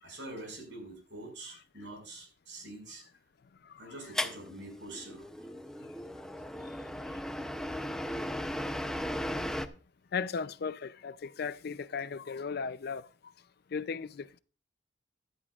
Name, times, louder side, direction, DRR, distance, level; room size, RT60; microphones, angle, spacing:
voice 1, 0.0-3.0 3.8-5.3 7.8-7.9, right 2 dB, 70° right, 5.7 m, -45 dB
sound 1, 4.1-9.7, equal, 5° left, 0.6 m, -36 dB
voice 2, 10.1-13.1 13.7-14.4, left 5 dB, 55° left, 0.4 m, -36 dB
16.0 x 11.0 x 2.4 m
head